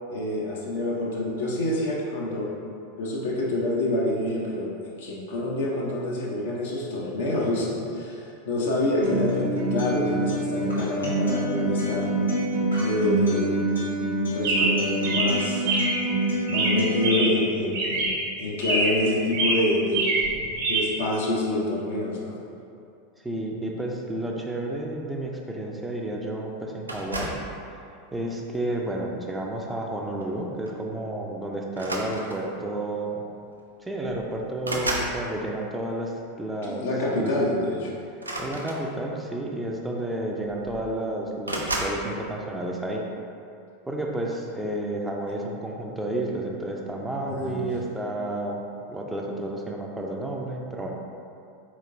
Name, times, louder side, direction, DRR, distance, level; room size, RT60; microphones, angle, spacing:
voice 1, 0.1-2.5 3.0-12.1 12.8-13.5 14.3-15.6 16.4-18.1 18.4-20.2 20.6-22.4 36.6-37.9 47.3-47.7, left 1 dB, 60° left, -4 dB, 0.6 m, -27 dB
Acoustic guitar, 9.0-17.0, right 1 dB, 80° left, 1.0 m, -26 dB
Chirp tweet, 14.4-16.1 16.5-17.5 17.7-18.3 18.6-19.1 19.3-20.8, right 2 dB, 55° right, 0.7 m, -25 dB
voice 2, 23.2-27.4 28.1-33.2 33.8-36.1 36.4-36.9 37.2-37.3 38.4-43.0 43.9-48.6 48.9-50.9, right 1 dB, 10° right, -1 dB, 0.4 m, -31 dB
sound 1, 26.9-27.5 28.4-28.7 30.2-30.4 30.7-30.8 31.7-32.6 33.6-33.7 34.0-35.2 38.1-39.2 40.1-40.2 40.5-41.0 41.4-42.0, right 1 dB, 85° right, 0.4 m, -32 dB
4.1 x 3.0 x 2.6 m, 2.6 s
figure-of-eight pair, 85°, 0 cm